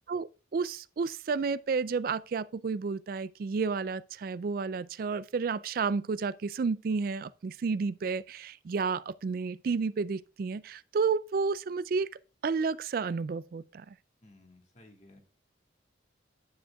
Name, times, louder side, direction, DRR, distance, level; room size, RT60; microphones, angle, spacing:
voice 1, 0.1-12.1 12.4-13.9, right 5 dB, 45° right, 0.3 m, -31 dB
voice 2, 14.2-15.2, left 1 dB, 35° left, 1.6 m, -56 dB
10.5 x 8.9 x 2.3 m
head